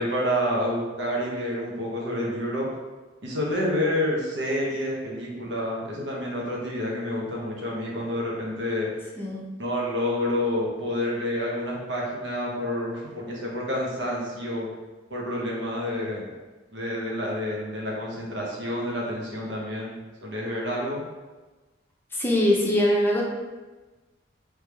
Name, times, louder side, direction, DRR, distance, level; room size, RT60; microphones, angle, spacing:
voice 1, 0.0-2.7 3.2-8.9 9.6-14.7 15.1-16.3 16.7-21.0, left 1 dB, 65° right, -3 dB, 1.0 m, -28 dB
voice 2, 9.2-9.5 22.1-23.2, left 1 dB, 10° left, -3 dB, 0.7 m, -22 dB
3.4 x 3.3 x 3.4 m, 1.2 s
head